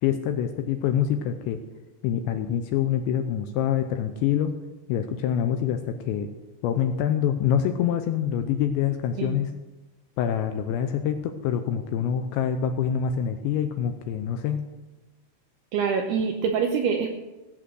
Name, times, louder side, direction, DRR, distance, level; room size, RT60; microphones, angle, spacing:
voice 1, 0.0-1.6 2.0-4.5 4.9-6.3 6.6-9.5 10.2-14.6, left 9 dB, 85° left, 7 dB, 2.7 m, -25 dB
voice 2, 15.7-17.1, right 6 dB, 80° right, 4 dB, 2.3 m, -25 dB
16.5 x 8.6 x 6.3 m, 1.1 s
omnidirectional pair, 5.8 m